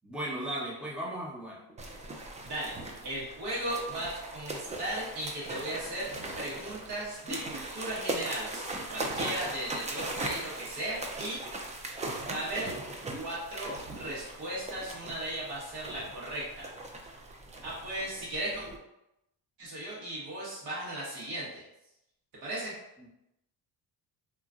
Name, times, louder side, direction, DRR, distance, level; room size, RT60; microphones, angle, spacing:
voice 1, 0.0-1.6 23.0-23.1, right 1 dB, ahead, -6 dB, 0.7 m, -36 dB
sound 1, 1.8-18.8, right 2 dB, 20° right, 0.3 m, -39 dB
voice 2, 2.4-2.7 3.0-11.4 12.3-12.7 13.1-16.7 17.6-18.7 19.6-21.6 22.4-22.7, right 1 dB, 75° right, -7 dB, 1.4 m, -36 dB
2.9 x 2.4 x 2.4 m, 0.88 s
cardioid pair, 100°, 40 cm